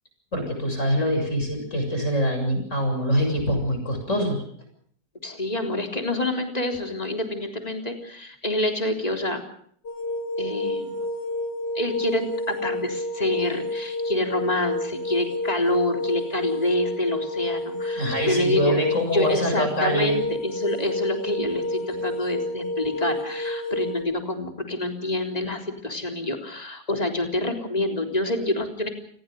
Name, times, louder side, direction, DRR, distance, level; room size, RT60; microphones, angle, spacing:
voice 1, 0.3-4.4 18.0-20.2 21.9-22.0, equal, 45° left, 4 dB, 7.8 m, -24 dB
voice 2, 5.2-9.4 10.4-11.0 11.7-18.8 19.1-28.9, left 1 dB, 20° left, 4 dB, 3.8 m, -27 dB
sound 1, 9.8-24.0, left 1 dB, 90° left, 5.6 m, -30 dB
29.5 x 21.0 x 5.4 m, 0.63 s
omnidirectional pair, 1.8 m